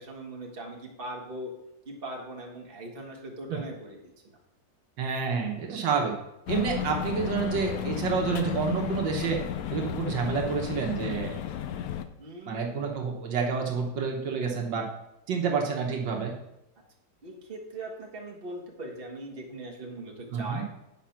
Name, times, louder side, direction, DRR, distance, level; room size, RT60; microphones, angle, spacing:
voice 1, 0.0-1.5 1.9-4.3 12.2-12.7 17.2-20.6, right 1 dB, 30° right, 0 dB, 1.7 m, -40 dB
voice 2, 5.0-6.1 6.5-9.4 9.7-11.3 12.5-14.9 15.3-16.3 20.3-20.6, right 6 dB, 80° right, 1 dB, 1.9 m, -29 dB
sound 1, 6.5-12.1, left 9 dB, 70° left, 0.9 m, -33 dB
9.0 x 5.1 x 5.8 m, 0.87 s
omnidirectional pair, 2.0 m